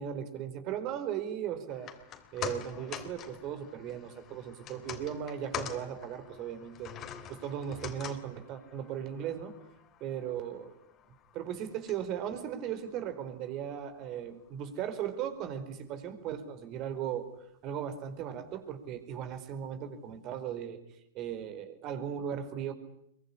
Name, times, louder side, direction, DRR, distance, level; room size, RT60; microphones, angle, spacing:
voice 1, 0.0-1.9 2.3-6.9 7.3-9.5 10.0-10.7 11.3-17.3 17.6-20.8 21.1-22.7, right 9 dB, 40° right, 10 dB, 4.7 m, -37 dB
sound 1, 1.7-14.1 14.4-14.5, left 9 dB, 35° left, 3.4 m, -45 dB
24.5 x 23.5 x 10.0 m, 0.75 s
hypercardioid pair, 100°, 0 cm